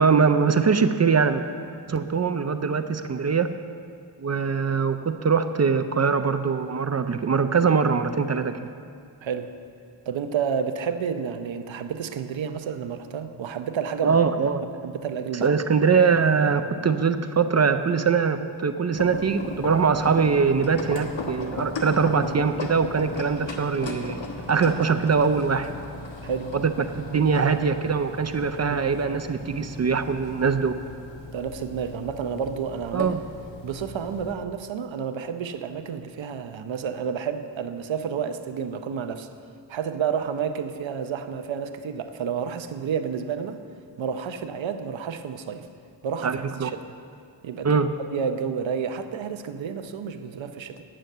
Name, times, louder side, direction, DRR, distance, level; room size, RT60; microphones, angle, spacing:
voice 1, 0.0-1.4 1.9-3.5 4.2-8.6 14.0-14.6 15.4-24.2 24.5-25.7 26.5-30.7 32.9-33.2 46.2-46.7 47.6-47.9, right 5 dB, 35° right, 9 dB, 0.5 m, -22 dB
voice 2, 9.2-9.5 10.1-14.2 14.8-15.5 26.2-26.5 28.7-28.8 29.4-29.6 31.3-33.1 33.6-39.3 39.7-43.6 44.0-45.7 46.0-46.8 47.4-50.8, right 7 dB, 85° right, 9 dB, 0.7 m, -30 dB
sound 1, 18.9-34.3, left 3 dB, 80° left, 1.2 m, -37 dB
9.0 x 8.9 x 6.6 m, 2.3 s
wide cardioid pair, 75°, 45 cm